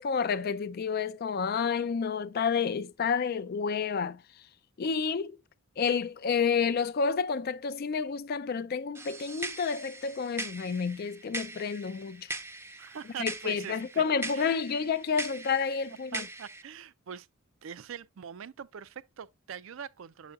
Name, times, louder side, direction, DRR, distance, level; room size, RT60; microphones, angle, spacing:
voice 1, 0.0-4.2 4.8-5.4 5.8-12.3 13.2-16.2, left 6 dB, 45° left, 0.4 m, -30 dB
sound 1, 8.9-16.6, right 2 dB, 10° right, 0.5 m, -41 dB
voice 2, 12.8-14.6 16.1-17.3 17.6-20.3, right 8 dB, 65° right, 0.4 m, -43 dB
7.6 x 5.8 x 2.3 m
head